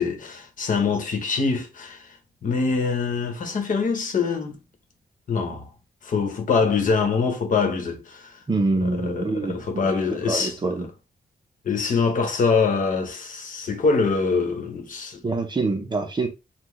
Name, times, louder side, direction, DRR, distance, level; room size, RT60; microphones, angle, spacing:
voice 1, 0.0-2.2 2.4-4.6 5.3-5.7 6.0-8.4 8.8-10.7 11.6-15.2, left 4 dB, 50° left, 1.1 m, -24 dB
voice 2, 8.5-10.9 15.2-16.3, right 3 dB, 25° right, 0.7 m, -26 dB
5.8 x 2.2 x 3.2 m
wide cardioid pair, 180°, 17 cm